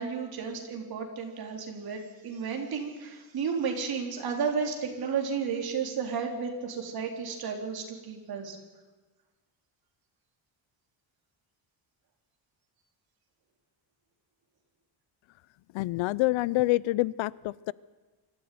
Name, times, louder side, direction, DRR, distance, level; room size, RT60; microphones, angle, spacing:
voice 1, 0.0-8.6, right 6 dB, 50° right, 2 dB, 4.0 m, -33 dB
voice 2, 15.7-17.7, left 19 dB, 70° left, 22 dB, 0.6 m, -27 dB
25.0 x 14.5 x 9.4 m, 1.3 s
cardioid pair, 155°, 48 cm